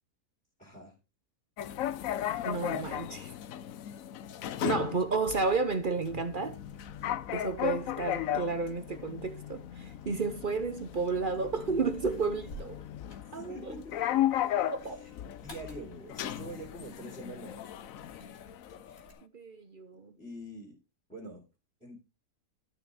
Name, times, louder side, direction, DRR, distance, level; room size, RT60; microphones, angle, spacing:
voice 1, 0.6-0.9 13.3-14.2 15.0-17.6 20.2-20.8 21.1-21.4 21.8-22.0, right 1 dB, 5° left, 4.0 m, -45 dB
sound 1, 1.6-19.1, left 11 dB, 65° left, 1.0 m, -36 dB
voice 2, 2.4-3.3 4.6-6.6 7.3-12.8 13.3-13.7 14.6-15.0 19.2-20.2, right 4 dB, 45° right, 0.8 m, -32 dB
sound 2, 6.5-19.1, right 1 dB, 40° left, 3.0 m, -55 dB
13.0 x 6.2 x 4.0 m
omnidirectional pair, 1.6 m